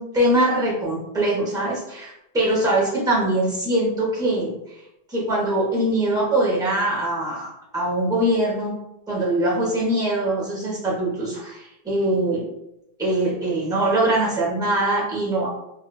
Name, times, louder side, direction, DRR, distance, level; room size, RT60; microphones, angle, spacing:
voice 1, 0.0-4.5 5.1-8.7 9.1-12.5 13.0-15.5, right 1 dB, 5° right, -4 dB, 0.7 m, -22 dB
2.9 x 2.3 x 2.2 m, 0.87 s
omnidirectional pair, 1.1 m